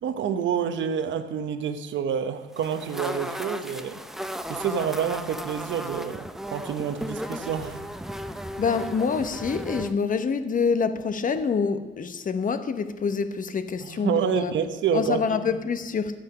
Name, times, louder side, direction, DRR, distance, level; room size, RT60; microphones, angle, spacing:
voice 1, 0.0-4.0 4.5-7.8 13.8-15.4, right 7 dB, 70° right, 9 dB, 1.0 m, -28 dB
sound 1, 2.5-9.9, equal, ahead, 0.6 m, -35 dB
voice 2, 8.6-14.5 14.9-16.2, left 5 dB, 40° left, 10 dB, 1.0 m, -26 dB
12.5 x 8.7 x 5.7 m, 1.2 s
cardioid pair, 90°, 20 cm